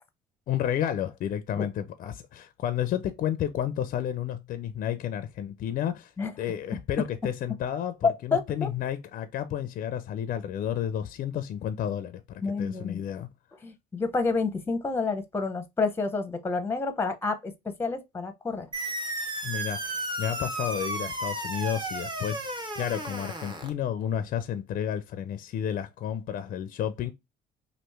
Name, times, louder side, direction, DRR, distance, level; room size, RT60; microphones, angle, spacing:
voice 1, 0.5-13.3 19.4-27.1, left 10 dB, 55° left, 0.4 m, -31 dB
voice 2, 8.0-8.7 12.4-13.0 13.6-18.7, left 4 dB, 15° left, 0.6 m, -29 dB
sound 1, 18.7-23.7, right 1 dB, 25° right, 0.9 m, -33 dB
3.0 x 2.5 x 3.3 m
cardioid pair, 110°, 17 cm